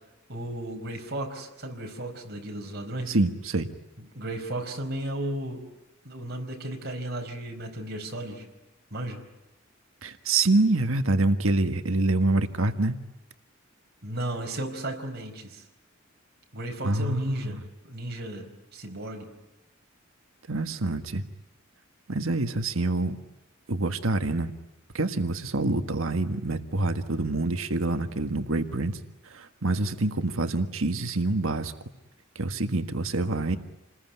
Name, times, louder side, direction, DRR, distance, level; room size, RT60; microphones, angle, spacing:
voice 1, 0.3-3.2 4.0-5.6 6.0-8.5 8.9-9.2 14.0-15.6 16.5-19.3, right 1 dB, 50° right, 2 dB, 4.6 m, -35 dB
voice 2, 3.1-3.7 10.0-12.9 16.8-17.6 20.5-21.2 22.1-23.1 23.7-24.5 24.9-29.0 29.2-31.7 32.3-33.6, right 2 dB, 75° right, 8 dB, 1.6 m, -26 dB
28.5 x 21.0 x 9.4 m, 0.96 s
head